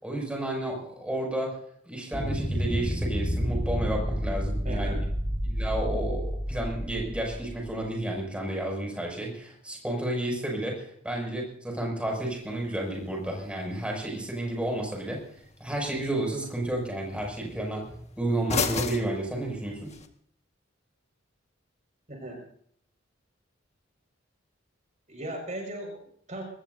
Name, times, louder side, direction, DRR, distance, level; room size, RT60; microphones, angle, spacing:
voice 1, 0.0-1.6 1.8-5.0 5.4-15.2 15.6-17.9 18.2-19.9, right 1 dB, 5° right, 0 dB, 6.4 m, -31 dB
sound 1, 2.1-7.9, equal, 15° left, 1.7 m, -30 dB
voice 2, 4.6-5.0 22.1-22.4 25.1-26.4, right 1 dB, 40° right, 2 dB, 5.7 m, -38 dB
sound 2, 12.1-20.1, left 4 dB, 35° left, 1.7 m, -38 dB
23.5 x 20.0 x 2.7 m, 0.64 s
head